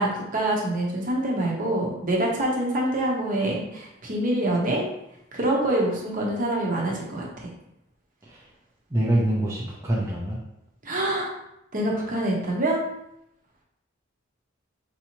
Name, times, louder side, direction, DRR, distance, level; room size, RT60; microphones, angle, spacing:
voice 1, 0.0-4.8 5.3-7.5 10.8-11.4 11.7-12.8, right 1 dB, 45° right, -2 dB, 1.0 m, -25 dB
voice 2, 8.9-10.4, right 1 dB, 15° right, -6 dB, 0.6 m, -25 dB
4.6 x 2.8 x 3.0 m, 0.81 s
head